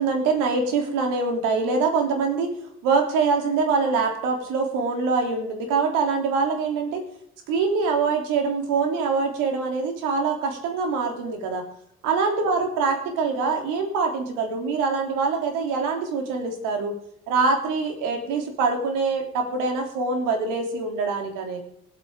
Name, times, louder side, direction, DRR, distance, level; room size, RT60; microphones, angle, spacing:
voice 1, 0.0-2.5 2.8-7.0 7.5-11.6 12.0-16.9 17.3-21.6, right 4 dB, 70° right, 3 dB, 3.4 m, -24 dB
25.5 x 9.0 x 3.8 m, 0.71 s
figure-of-eight pair, 45°, 34 cm